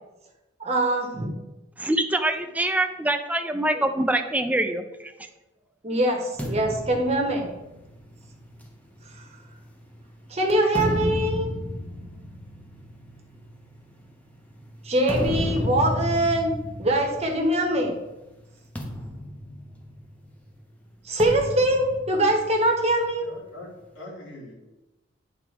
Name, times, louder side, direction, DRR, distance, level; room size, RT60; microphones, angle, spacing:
voice 1, 0.6-1.3 5.8-7.5 10.3-11.5 14.8-17.9 21.0-23.3, right 1 dB, 35° right, 0 dB, 1.3 m, -23 dB
voice 2, 1.8-5.3, right 1 dB, 10° right, 6 dB, 0.5 m, -25 dB
sound 1, 6.4-10.0 10.5-17.9 18.2-18.4 18.8-20.4 21.2-22.9, left 1 dB, 10° left, 0.9 m, -33 dB
voice 3, 23.2-24.6, left 1 dB, 80° left, -3 dB, 2.6 m, -42 dB
9.2 x 3.8 x 4.6 m, 1.0 s
head